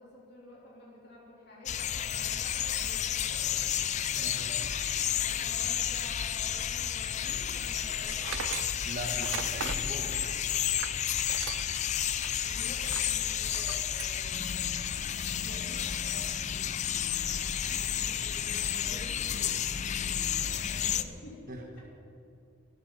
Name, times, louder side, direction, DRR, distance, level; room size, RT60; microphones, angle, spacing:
voice 1, 0.0-4.7 5.2-8.4 12.4-14.7 15.2-21.4, left 1 dB, 55° left, -6 dB, 3.5 m, -51 dB
sound 1, 1.7-21.0, left 10 dB, 35° left, 0.4 m, -31 dB
voice 2, 4.1-4.6 8.8-10.3 21.5-21.6, right 1 dB, 45° right, 3 dB, 1.3 m, -40 dB
Tools, 8.1-11.8 12.2-12.3 12.8-13.2 13.5-14.2, right 9 dB, 70° right, 0.4 m, -40 dB
sound 2, 14.3-20.9, left 2 dB, 15° left, 1.5 m, -45 dB
17.0 x 13.0 x 4.1 m, 2.8 s
head